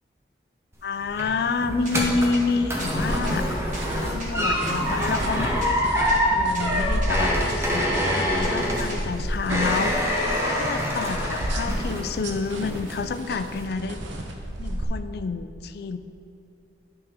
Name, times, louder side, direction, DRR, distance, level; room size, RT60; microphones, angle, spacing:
sound 1, 0.7-12.3 12.6-13.1 13.5-13.6, equal, 15° right, 0.9 m, -26 dB
voice 1, 0.8-3.5 4.1-5.8 6.3-10.1 10.4-14.0 14.6-16.0, left 4 dB, 55° left, 10 dB, 0.3 m, -29 dB
sound 2, 1.6-9.0, equal, 45° right, 1.5 m, -36 dB
sound 3, 2.8-14.8, right 1 dB, 85° right, 0.8 m, -32 dB
10.5 x 5.8 x 3.7 m, 2.7 s
head